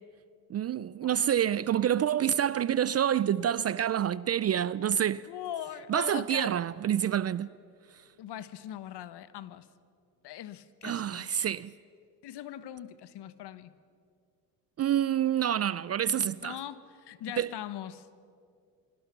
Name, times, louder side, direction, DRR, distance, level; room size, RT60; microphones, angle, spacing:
voice 1, 0.5-5.2 5.9-7.5 10.8-11.7 14.8-16.6 17.4-17.5, right 10 dB, 30° right, 0.5 m, -27 dB
voice 2, 5.3-6.6 8.2-9.7 10.2-11.3 12.2-13.7 16.4-18.1, left 11 dB, 55° left, 1.3 m, -41 dB
28.5 x 24.5 x 5.9 m
hypercardioid pair, 75°, 49 cm